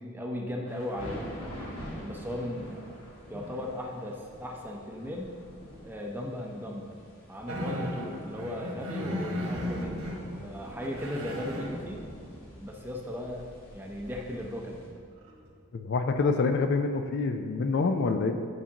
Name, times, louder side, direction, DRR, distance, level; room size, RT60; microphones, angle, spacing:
voice 1, 0.0-1.4 2.0-2.9 3.3-5.4 5.8-7.0 7.3-10.1 10.4-12.0 12.6-13.5 13.7-14.8, left 1 dB, 10° right, 0 dB, 0.6 m, -37 dB
sound 1, 0.7-14.9, equal, 70° left, 1.7 m, -45 dB
sound 2, 7.5-10.2 10.7-11.7 14.5-14.6 15.2-15.5, equal, 75° right, 1.6 m, -35 dB
voice 2, 15.7-18.3, left 4 dB, 50° left, 6 dB, 0.3 m, -26 dB
9.6 x 5.7 x 2.9 m, 2.3 s
head